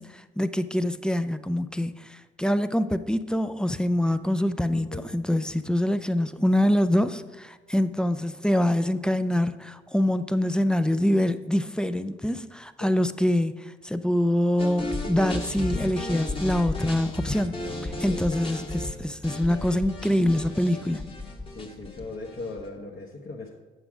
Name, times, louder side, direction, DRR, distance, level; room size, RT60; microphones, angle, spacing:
voice 1, 0.0-17.5 17.8-21.0, left 1 dB, 5° left, 0.4 m, -25 dB
voice 2, 4.7-5.0 12.8-12.9 18.1-18.4 21.5-23.5, left 3 dB, 50° left, 1.1 m, -39 dB
sound 1, 14.6-22.7, left 2 dB, 25° left, 1.4 m, -33 dB
8.1 x 6.0 x 5.0 m
cardioid pair, 90°, 20 cm